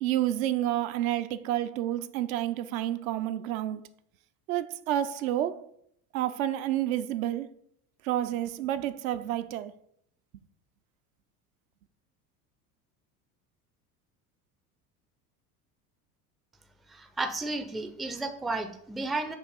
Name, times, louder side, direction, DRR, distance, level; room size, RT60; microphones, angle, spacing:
voice 1, 0.0-3.9 4.5-5.7 6.1-7.5 8.0-9.7, right 12 dB, 65° right, 0.5 m, -29 dB
voice 2, 16.9-19.4, right 2 dB, ahead, 0.4 m, -33 dB
6.2 x 2.9 x 5.5 m
hypercardioid pair, 70°, 45 cm